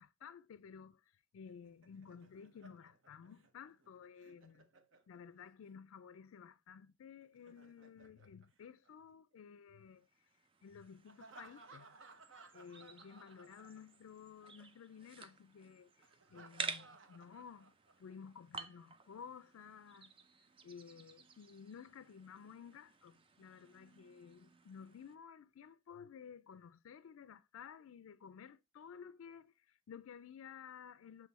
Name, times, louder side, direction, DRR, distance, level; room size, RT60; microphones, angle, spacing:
voice 1, 0.0-4.7 5.1-10.3 10.6-12.0 12.5-17.7 18.0-20.1 20.6-31.3, left 7 dB, 80° left, 0.3 m, -54 dB
Laughter, 1.5-5.5 7.2-9.4 11.1-14.1 14.4-14.5 16.0-18.1, right 3 dB, 65° right, 0.8 m, -61 dB
sound 1, 10.0-25.2, right 4 dB, 25° right, 0.5 m, -52 dB
7.4 x 3.1 x 4.1 m
head